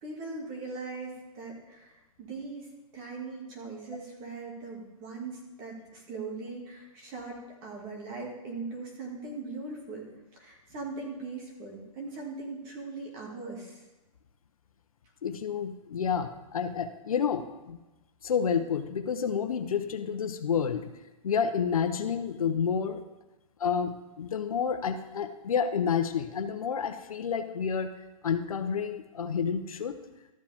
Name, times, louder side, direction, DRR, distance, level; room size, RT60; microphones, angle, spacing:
voice 1, 0.0-2.7 2.9-10.1 10.3-13.8, right 3 dB, 25° right, -1 dB, 2.2 m, -40 dB
voice 2, 15.2-17.8 18.2-20.9 21.2-23.0 23.6-27.9 28.2-30.0, left 7 dB, 85° left, 8 dB, 1.0 m, -29 dB
13.5 x 7.6 x 3.6 m, 1.1 s
hypercardioid pair, 165°, 18 cm